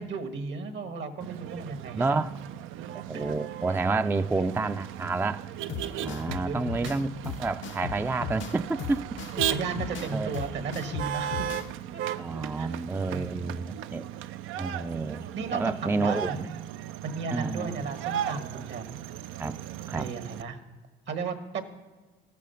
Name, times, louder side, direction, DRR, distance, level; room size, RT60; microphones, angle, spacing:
voice 1, 0.0-2.2 3.1-3.2 6.0-7.1 9.3-11.5 11.9-12.0 12.5-12.8 13.1-13.5 15.3-16.5 17.0-19.0 19.9-20.6 21.1-21.6, right 4 dB, 65° right, 1.4 m, -35 dB
Motor vehicle (road), 1.2-20.4, right 11 dB, 85° right, 0.4 m, -36 dB
voice 2, 1.9-2.3 3.1-5.4 6.0-9.2 10.1-10.3 12.2-14.0 14.6-16.5 17.3-17.7 19.4-19.6 19.9-20.1, right 3 dB, 10° right, 0.3 m, -29 dB
sound 1, 5.7-11.7, left 7 dB, 75° left, 0.7 m, -37 dB
13.5 x 8.4 x 5.7 m
cardioid pair, 90°, 20 cm